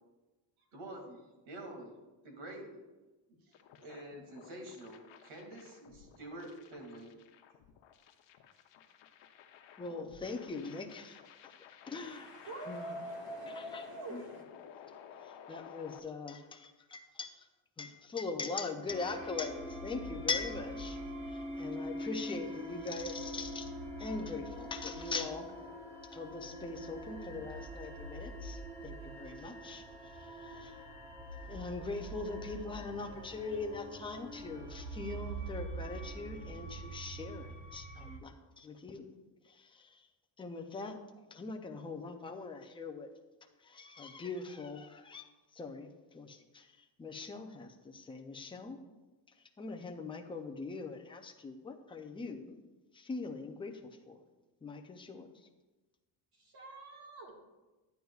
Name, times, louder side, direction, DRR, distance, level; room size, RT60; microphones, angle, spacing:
voice 1, 0.7-1.9 2.2-2.9 3.3-7.1, right 1 dB, 85° right, 2 dB, 2.3 m, -48 dB
sound 1, 3.5-16.0, left 8 dB, 70° left, 0.8 m, -55 dB
voice 2, 9.8-11.2 11.9-12.9 13.5-14.2 15.2-17.5 17.8-21.0 21.3-23.7 24.0-25.5 26.1-30.7 31.5-39.1 39.4-40.1 40.4-41.0 41.3-43.1 43.6-45.3 45.5-48.8 49.6-52.6 52.9-54.2 54.6-55.3, left 4 dB, 10° left, 5 dB, 0.4 m, -41 dB
voice 3, 12.0-14.4 56.4-57.3, right 1 dB, 50° right, -1 dB, 1.8 m, -45 dB
sound 2, 18.9-38.2, right 1 dB, 15° right, 0.7 m, -44 dB
10.5 x 9.3 x 2.3 m, 1.1 s
cardioid pair, 170°, 47 cm